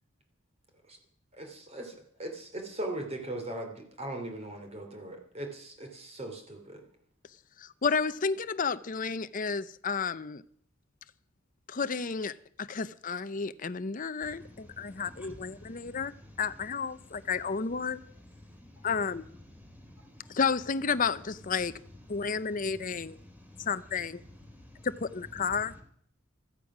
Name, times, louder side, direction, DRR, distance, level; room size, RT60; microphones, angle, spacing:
voice 1, 1.3-6.8, right 1 dB, 30° right, 2.9 m, -39 dB
voice 2, 7.6-10.4 11.7-16.1 16.4-18.0 18.8-19.2 20.3-21.8 22.1-23.2 23.7-24.2 24.8-25.7, left 5 dB, 40° left, 0.6 m, -31 dB
voice 3, 14.8-16.1 18.6-18.8 19.7-20.3 23.3-23.6 24.5-24.6, left 1 dB, 10° right, 3.9 m, -52 dB
16.0 x 14.0 x 6.1 m
head